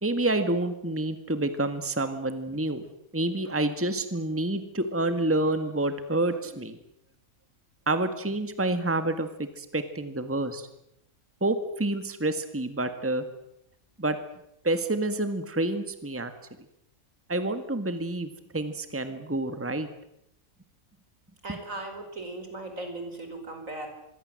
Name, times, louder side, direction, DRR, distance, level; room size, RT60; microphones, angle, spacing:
voice 1, 0.0-2.8 3.1-6.8 7.9-9.3 9.6-10.7 11.4-13.2 14.0-14.2 14.6-16.3 17.3-19.9 21.5-21.6, right 2 dB, 10° right, 9 dB, 1.8 m, -28 dB
voice 2, 21.4-23.9, right 2 dB, 70° right, 5 dB, 5.3 m, -37 dB
26.0 x 22.5 x 7.8 m, 0.79 s
omnidirectional pair, 1.4 m